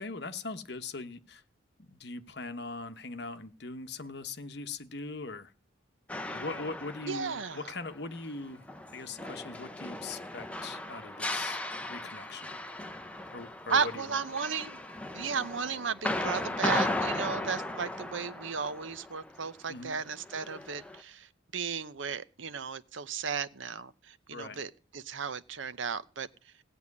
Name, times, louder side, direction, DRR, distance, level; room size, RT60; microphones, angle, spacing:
voice 1, 0.0-1.4 1.8-5.5 6.3-8.7 8.9-11.6 11.9-12.6 13.3-14.2 19.7-20.0 24.3-24.6, left 3 dB, 55° left, 1.1 m, -41 dB
sound 1, 6.1-19.7 20.0-21.0, left 1 dB, 5° left, 0.9 m, -37 dB
voice 2, 7.0-7.7 13.7-14.8 15.1-26.5, right 6 dB, 75° right, 0.8 m, -35 dB
16.5 x 5.6 x 9.7 m
head